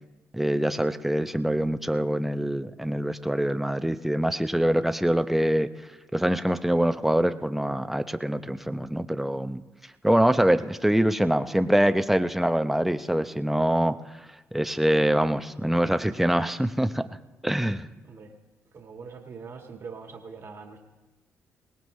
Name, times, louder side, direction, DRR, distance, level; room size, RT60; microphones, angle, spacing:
voice 1, 0.3-5.7 6.1-9.6 10.0-14.3 14.5-17.0 17.4-17.9, right 1 dB, 5° right, 10 dB, 0.7 m, -24 dB
voice 2, 18.0-18.4 18.7-20.8, right 5 dB, 50° right, 2 dB, 1.7 m, -42 dB
21.0 x 18.5 x 3.2 m, 1.1 s
supercardioid pair, 60°, 6 cm